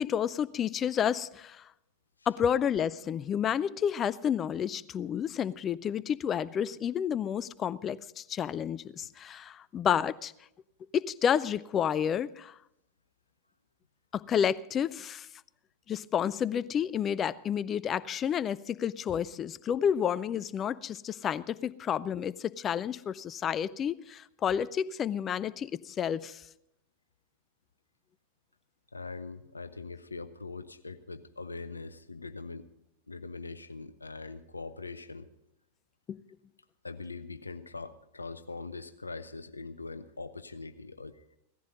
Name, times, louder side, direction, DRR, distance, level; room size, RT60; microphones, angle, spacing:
voice 1, 0.0-1.7 2.3-10.3 10.9-12.6 14.1-15.3 15.9-26.4 36.1-36.2, left 8 dB, 25° left, 0.4 m, -30 dB
voice 2, 28.9-32.7 33.1-35.3 36.8-41.4, left 3 dB, 80° left, 0.6 m, -42 dB
17.0 x 14.5 x 3.9 m
figure-of-eight pair, 90°, 0 cm